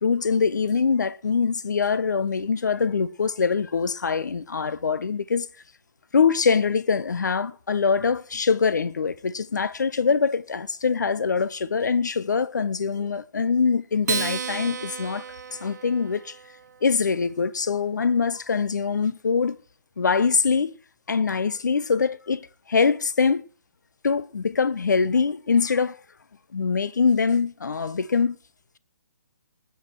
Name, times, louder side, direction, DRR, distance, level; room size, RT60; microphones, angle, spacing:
voice 1, 0.0-5.5 6.1-15.2 15.5-16.4 16.8-19.6 20.0-20.7 21.1-23.4 24.0-26.0 26.5-28.4, left 5 dB, 80° left, 1.0 m, -23 dB
Acoustic guitar, 14.0-16.7, right 6 dB, 70° right, 1.3 m, -32 dB
19.5 x 8.0 x 4.7 m
hypercardioid pair, 145°, 10 cm